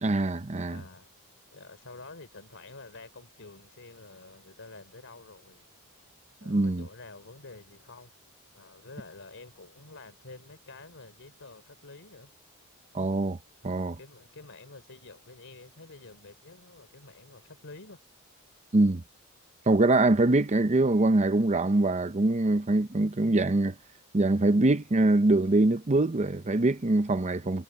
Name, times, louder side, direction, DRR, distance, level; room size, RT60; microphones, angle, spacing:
voice 1, 0.0-0.8 6.5-6.9 12.9-13.4 13.6-14.0 18.7-19.0 19.7-23.8 24.1-27.6, right 2 dB, 30° right, 0.7 m, -24 dB
voice 2, 0.7-1.1 1.5-5.7 6.4-8.1 8.5-12.3 13.6-18.0, left 3 dB, 60° left, 3.5 m, -49 dB
head